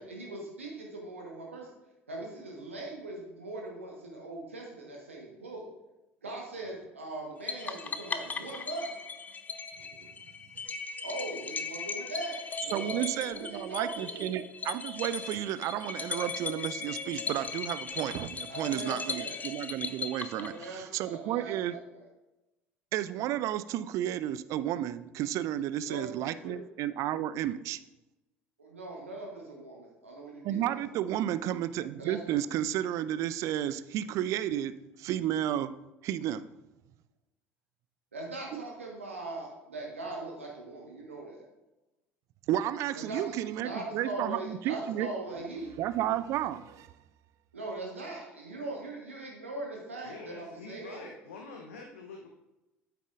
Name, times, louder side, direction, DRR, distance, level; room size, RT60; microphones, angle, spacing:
voice 1, 0.0-1.7 2.1-5.6 6.2-8.9 11.0-14.3 18.5-19.4 20.4-22.1 25.8-26.5 28.6-31.0 32.0-32.4 38.1-41.4 42.9-45.8 47.5-51.1, right 2 dB, 80° right, -1 dB, 1.2 m, -40 dB
sound 1, 7.5-20.9, left 5 dB, 25° left, 0.6 m, -38 dB
voice 2, 12.7-21.8 22.9-27.8 30.4-35.7 36.0-36.4 38.5-38.6 42.5-45.1 45.8-46.9, right 12 dB, 50° right, 14 dB, 0.4 m, -32 dB
voice 3, 50.0-52.3, left 3 dB, 75° left, 2 dB, 0.7 m, -46 dB
9.1 x 8.2 x 2.5 m, 0.99 s
figure-of-eight pair, 60°, 7 cm